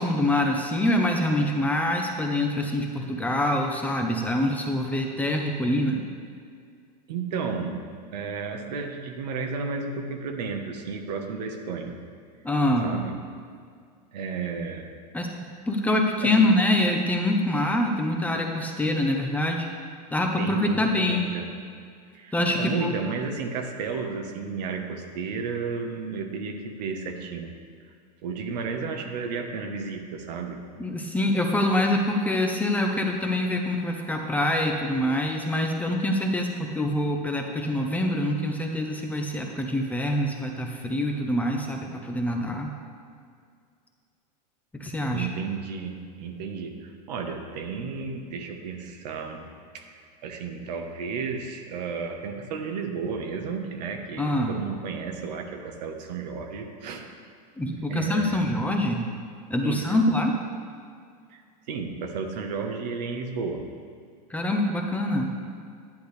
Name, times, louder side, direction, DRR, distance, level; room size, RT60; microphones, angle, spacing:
voice 1, 0.0-6.1 12.4-13.0 15.1-15.3 15.7-19.7 20.1-21.3 22.3-22.9 30.8-42.7 44.8-45.3 54.2-54.5 57.6-59.1 59.5-60.3 64.3-65.3, left 1 dB, 5° left, 2 dB, 0.8 m, -25 dB
voice 2, 7.1-7.8 8.1-12.0 12.8-13.1 14.1-14.8 16.2-16.5 20.4-21.5 22.1-27.5 28.2-30.6 45.1-49.4 49.7-49.9 50.2-57.0 57.8-58.4 59.6-60.0 61.3-61.4 61.7-63.6, right 5 dB, 80° right, 4 dB, 1.3 m, -32 dB
10.5 x 10.0 x 3.3 m, 2.2 s
supercardioid pair, 135°, 21 cm